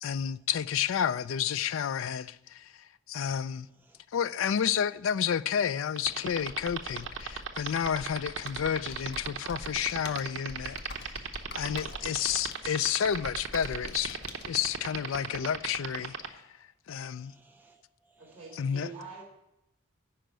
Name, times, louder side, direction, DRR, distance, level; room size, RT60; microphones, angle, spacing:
voice 1, 0.0-3.7 4.1-11.3 11.5-14.2 14.5-16.4 16.9-17.3 18.6-18.9, left 8 dB, 70° left, 0.4 m, -31 dB
voice 2, 3.6-4.0 4.6-4.9 11.7-12.4 15.1-15.7 17.0-19.2, right 3 dB, 10° right, 0.4 m, -63 dB
sound 1, 6.0-16.3, right 7 dB, 70° right, 0.8 m, -34 dB
Computer keyboard, 6.3-14.4, left 2 dB, 50° left, 0.8 m, -45 dB
voice 3, 18.2-19.2, right 4 dB, 30° right, 3.7 m, -45 dB
10.0 x 5.1 x 7.8 m
head